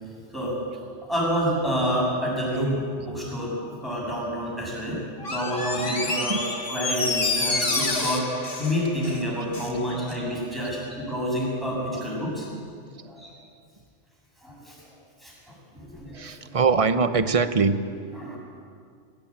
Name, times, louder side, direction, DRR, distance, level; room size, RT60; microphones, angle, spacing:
voice 1, 1.0-5.0 5.3-6.4 6.7-8.3 8.6-12.6 13.0-13.3 14.4-14.8 15.2-16.4 18.1-18.4, equal, ahead, -5 dB, 7.4 m, -28 dB
Door, 5.2-9.8 10.1-10.2, left 3 dB, 50° left, 1.9 m, -28 dB
voice 2, 16.1-17.8, right 5 dB, 30° right, 11 dB, 0.9 m, -22 dB
21.0 x 16.5 x 8.8 m, 2.2 s
omnidirectional pair, 1.2 m